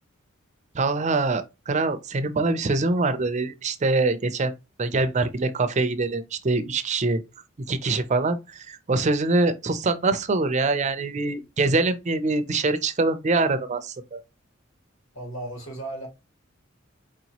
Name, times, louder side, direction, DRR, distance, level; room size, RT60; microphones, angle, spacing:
voice 1, 0.7-4.5 4.8-7.2 7.7-14.2, right 3 dB, 35° right, 0.5 m, -24 dB
voice 2, 15.1-16.1, right 1 dB, 80° left, 2.0 m, -35 dB
4.5 x 2.9 x 2.8 m
head